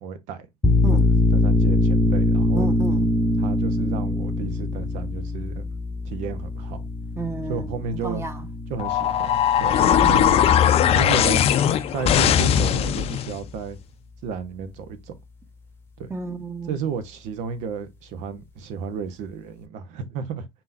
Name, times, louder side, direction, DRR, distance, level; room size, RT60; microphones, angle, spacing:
voice 1, 0.0-0.5 0.9-2.7 3.4-5.6 6.1-6.8 7.5-8.2 8.7-11.4 11.9-13.8 14.2-15.1 16.0-16.1 16.7-20.5, right 6 dB, 65° right, 0.9 m, -33 dB
sound 1, 0.6-11.9, left 2 dB, 20° left, 0.9 m, -23 dB
voice 2, 2.5-3.1 7.2-8.5 9.8-10.5 16.1-16.8, right 3 dB, 20° right, 1.2 m, -31 dB
sound 2, 8.8-13.4, left 9 dB, 50° left, 0.5 m, -19 dB
4.2 x 3.7 x 2.5 m
hypercardioid pair, 70°, 13 cm